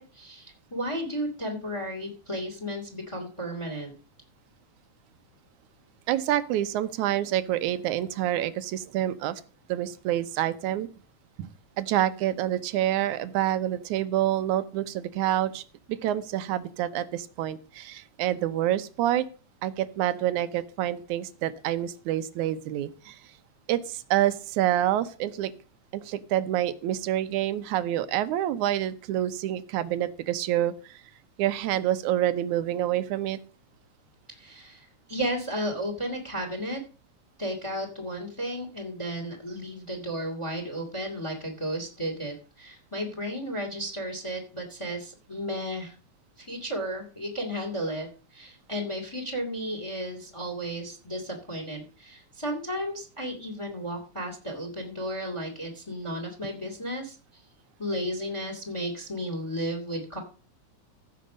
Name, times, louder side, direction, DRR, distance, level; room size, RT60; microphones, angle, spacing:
voice 1, 0.0-3.9 34.3-36.8 37.4-45.9 46.4-57.4 57.8-60.2, equal, 10° left, 5 dB, 2.3 m, -34 dB
voice 2, 6.1-9.4 9.7-10.9 11.4-11.5 11.8-15.6 15.9-19.3 19.6-23.2 23.7-25.5 25.9-31.0 31.4-33.4, right 12 dB, 80° right, 13 dB, 2.3 m, -27 dB
15.5 x 6.6 x 5.2 m, 0.37 s
omnidirectional pair, 3.5 m